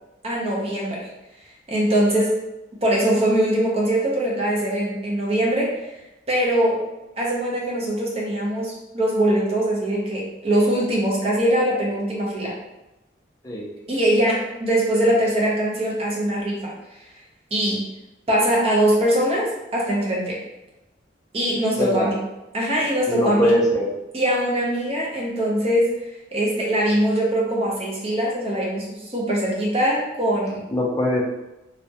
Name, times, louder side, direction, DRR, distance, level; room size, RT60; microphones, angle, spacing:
voice 1, 0.2-1.1 1.7-2.4 2.8-5.8 6.3-6.8 7.2-12.5 13.9-16.7 17.5-17.9 18.3-20.4 21.3-22.2 22.5-23.5 24.1-25.9 26.3-30.7, right 1 dB, 30° right, -4 dB, 0.5 m, -22 dB
voice 2, 21.8-22.1 23.1-23.9 30.7-31.2, equal, 20° left, -3 dB, 0.4 m, -21 dB
2.2 x 2.0 x 2.7 m, 0.96 s
head